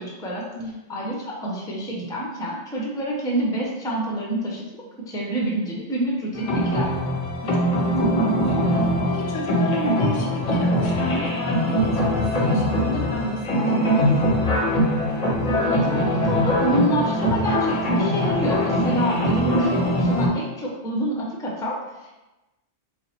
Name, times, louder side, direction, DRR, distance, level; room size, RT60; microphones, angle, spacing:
voice 1, 0.0-0.4 0.9-6.9 15.6-22.1, right 1 dB, 5° left, -2 dB, 0.4 m, -27 dB
voice 2, 0.5-1.1 7.4-14.5 19.2-19.3, left 1 dB, 85° left, 0 dB, 0.9 m, -33 dB
sound 1, 6.3-20.3, equal, 40° left, 0.7 m, -22 dB
4.0 x 2.0 x 4.2 m, 1.1 s
omnidirectional pair, 1.2 m